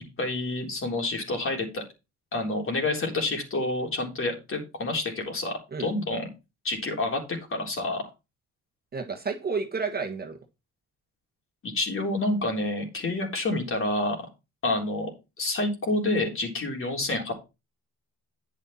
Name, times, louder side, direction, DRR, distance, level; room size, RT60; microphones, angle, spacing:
voice 1, 0.2-1.8 2.3-6.3 6.6-7.2 7.5-8.0 11.6-14.2 14.6-15.1 15.4-17.3, left 2 dB, 45° left, 1 dB, 3.8 m, -28 dB
voice 2, 8.9-10.4, right 4 dB, 30° right, 4 dB, 1.5 m, -31 dB
9.3 x 6.6 x 4.3 m, 0.27 s
cardioid pair, 90°, 30 cm